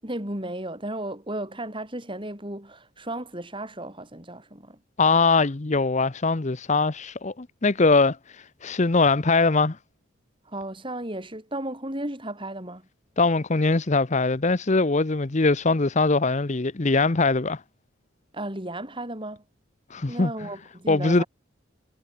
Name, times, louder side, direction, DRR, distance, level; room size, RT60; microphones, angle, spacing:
voice 1, 0.0-4.8 10.5-12.9 18.3-19.4 20.1-21.3, right 1 dB, 25° right, 6.9 m, -34 dB
voice 2, 5.0-8.2 8.6-9.8 13.2-17.6 19.9-20.3 20.9-21.2, left 3 dB, 35° left, 0.8 m, -21 dB
head